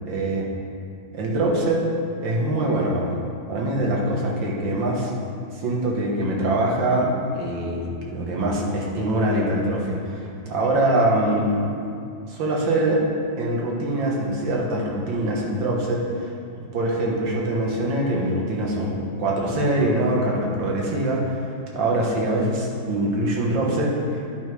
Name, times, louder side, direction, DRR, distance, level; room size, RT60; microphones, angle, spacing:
voice 1, 0.1-0.5 1.1-1.8 2.2-3.2 3.5-5.1 5.5-11.7 12.3-13.0 13.4-16.3 16.7-24.3, right 1 dB, 85° right, -2 dB, 2.0 m, -23 dB
10.5 x 5.8 x 4.7 m, 2.5 s
omnidirectional pair, 2.0 m